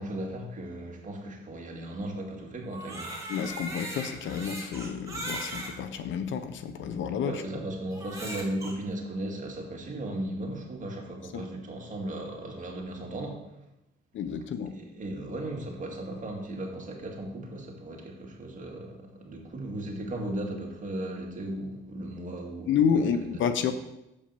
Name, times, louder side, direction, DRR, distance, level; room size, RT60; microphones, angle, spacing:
voice 1, 0.0-3.2 7.2-13.6 14.8-22.7 23.1-23.3, right 1 dB, 40° right, 0 dB, 2.2 m, -36 dB
Crying sobbing, 2.6-5.8 6.5-6.6 7.9-8.7, right 1 dB, 15° right, 2.4 m, -38 dB
voice 2, 3.3-7.3 11.3-11.4 14.1-14.7 22.7-23.7, left 7 dB, 75° left, 10 dB, 0.8 m, -29 dB
7.1 x 5.4 x 6.9 m, 0.90 s
cardioid pair, 90°, 20 cm